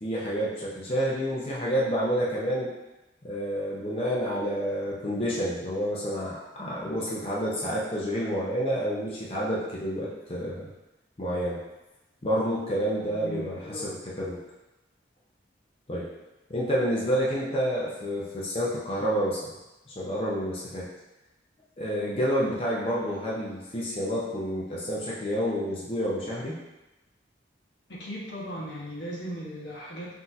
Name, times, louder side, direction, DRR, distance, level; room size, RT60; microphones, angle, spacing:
voice 1, 0.0-2.7 3.2-10.7 11.2-11.6 12.2-14.4 15.9-16.1 16.5-19.5 19.9-20.9 21.8-26.6, equal, 35° left, -6 dB, 0.7 m, -29 dB
voice 2, 13.1-13.9 27.9-30.1, equal, 80° left, -5 dB, 1.1 m, -37 dB
5.8 x 2.8 x 2.7 m, 1.0 s
head